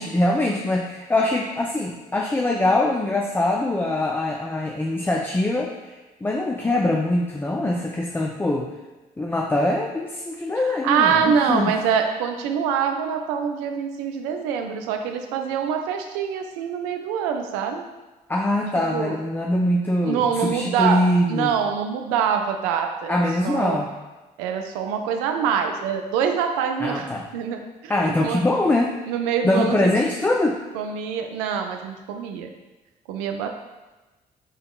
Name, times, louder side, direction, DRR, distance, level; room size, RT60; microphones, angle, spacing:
voice 1, 0.0-8.7 9.2-11.7 18.3-21.6 23.1-23.9 26.8-27.3 27.9-29.0 29.4-30.6, left 1 dB, 10° left, 0 dB, 0.3 m, -23 dB
voice 2, 10.8-17.8 18.9-19.2 20.0-21.0 21.3-23.2 23.4-23.8 24.4-27.1 27.3-27.6 27.9-28.4 29.1-29.9 30.7-32.5 33.1-33.5, right 7 dB, 65° right, 5 dB, 0.5 m, -24 dB
5.3 x 3.5 x 2.3 m, 1.1 s
figure-of-eight pair, 45°, 21 cm